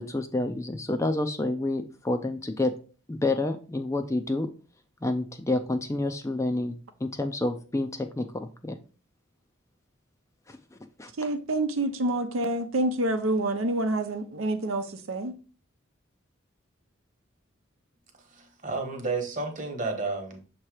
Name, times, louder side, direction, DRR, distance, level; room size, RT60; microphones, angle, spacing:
voice 1, 0.0-2.7 3.1-4.5 5.0-8.8 10.5-11.1, left 2 dB, 15° left, 0.4 m, -29 dB
voice 2, 11.2-15.3, right 1 dB, 85° right, 0.7 m, -27 dB
voice 3, 18.3-20.4, right 3 dB, 40° right, 1.2 m, -31 dB
6.6 x 3.0 x 4.7 m
head